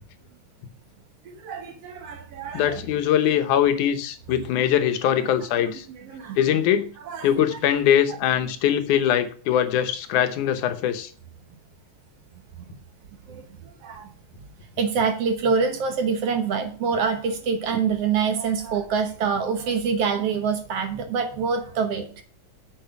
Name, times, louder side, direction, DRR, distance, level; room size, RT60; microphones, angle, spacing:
voice 1, 1.3-2.8 6.1-6.4 7.1-7.4 13.3-13.4 13.8-14.1 14.8-22.2, right 6 dB, 60° right, 6 dB, 1.9 m, -25 dB
voice 2, 2.5-5.9 6.4-6.9 7.2-11.1, left 10 dB, 85° left, 8 dB, 2.4 m, -22 dB
8.8 x 6.5 x 5.9 m, 0.43 s
omnidirectional pair, 3.4 m